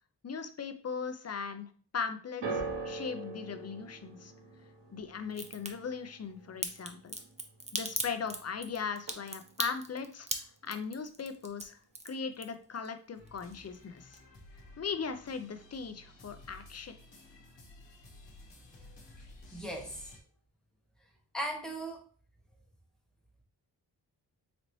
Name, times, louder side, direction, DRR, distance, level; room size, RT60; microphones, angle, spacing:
voice 1, 0.2-4.3 4.9-7.2 7.7-10.3 10.6-11.8 12.0-14.2 14.8-16.9, left 6 dB, 40° left, 9 dB, 0.5 m, -38 dB
sound 1, 2.4-8.7 9.0-9.6 10.4-10.5, right 3 dB, 80° right, 1.1 m, -43 dB
Crack, 5.3-5.7 6.6-12.9 13.2-13.8 14.1-14.2, right 2 dB, 15° right, 0.5 m, -37 dB
sound 2, 13.2-20.2, left 2 dB, 85° left, 1.0 m, -54 dB
voice 2, 19.5-20.1 21.3-22.0, right 1 dB, ahead, -1 dB, 1.1 m, -37 dB
4.1 x 2.8 x 3.0 m, 0.43 s
cardioid pair, 65°, 42 cm